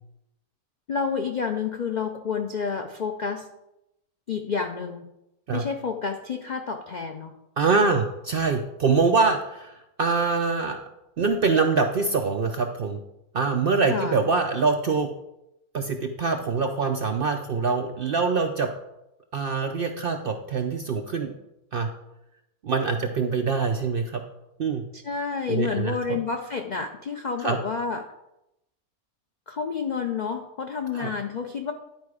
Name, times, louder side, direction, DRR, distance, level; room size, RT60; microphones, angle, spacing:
voice 1, 0.9-3.5 4.3-5.1 5.5-7.3 13.9-14.2 24.9-28.1 29.5-31.7, left 5 dB, 65° left, 4 dB, 0.4 m, -29 dB
voice 2, 7.6-10.8 11.2-13.0 13.3-15.1 15.7-18.7 19.3-21.3 21.7-21.9 22.6-24.2 24.6-24.8 25.5-26.2 27.4-27.6 30.9-31.1, right 4 dB, 60° right, 5 dB, 0.6 m, -24 dB
11.0 x 4.8 x 4.8 m, 0.89 s
omnidirectional pair, 1.5 m